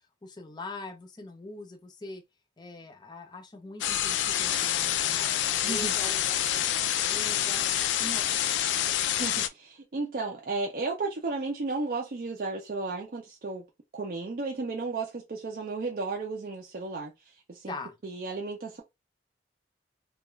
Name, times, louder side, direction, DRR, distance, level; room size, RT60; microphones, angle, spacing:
voice 1, 0.2-2.2 2.6-7.7 8.0-8.7 17.7-17.9, left 2 dB, 25° left, 0.5 m, -43 dB
sound 1, 3.8-9.5, left 11 dB, 85° left, 0.3 m, -27 dB
voice 2, 5.6-5.9 9.2-13.6 13.9-17.1 17.5-17.7 18.0-18.8, right 3 dB, 50° right, 0.4 m, -33 dB
2.3 x 2.2 x 3.0 m
head